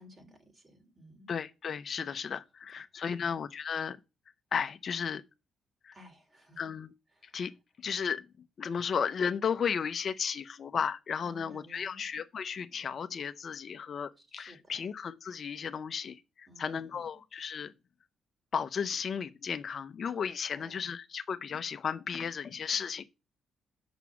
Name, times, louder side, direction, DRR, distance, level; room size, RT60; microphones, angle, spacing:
voice 1, 0.0-1.4 3.1-3.4 5.9-6.6 7.1-7.4 11.2-12.0 14.2-14.9 16.5-17.0 20.5-20.9, equal, 25° right, 2.9 m, -55 dB
voice 2, 1.3-4.0 4.5-5.2 5.8-5.9 6.6-6.9 7.3-7.5 7.8-8.2 8.6-17.7 18.5-23.0, left 6 dB, 50° left, 0.7 m, -34 dB
6.6 x 6.1 x 7.1 m
cardioid pair, 90°, 0 cm